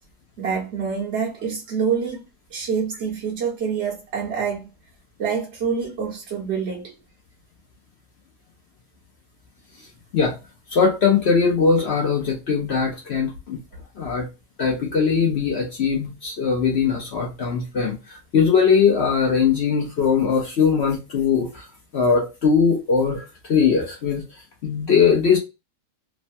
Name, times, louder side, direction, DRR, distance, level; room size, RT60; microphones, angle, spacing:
voice 1, 0.4-2.2 2.5-4.7 5.2-6.9 13.7-13.8, right 6 dB, 55° right, 0.8 m, -26 dB
voice 2, 10.7-13.6 14.0-14.3 14.6-21.6 21.9-24.2 24.6-25.4, left 6 dB, 55° left, 0.7 m, -20 dB
3.2 x 2.1 x 2.6 m
omnidirectional pair, 1.7 m